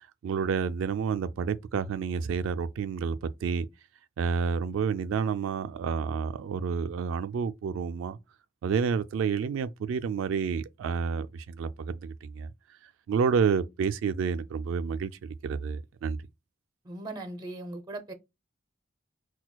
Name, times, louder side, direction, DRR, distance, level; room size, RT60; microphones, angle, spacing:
voice 1, 0.2-3.7 4.2-8.2 8.6-12.5 13.1-16.2, right 6 dB, 85° right, 0.3 m, -29 dB
voice 2, 16.8-18.1, right 2 dB, 20° right, 0.6 m, -38 dB
5.9 x 2.2 x 2.2 m
head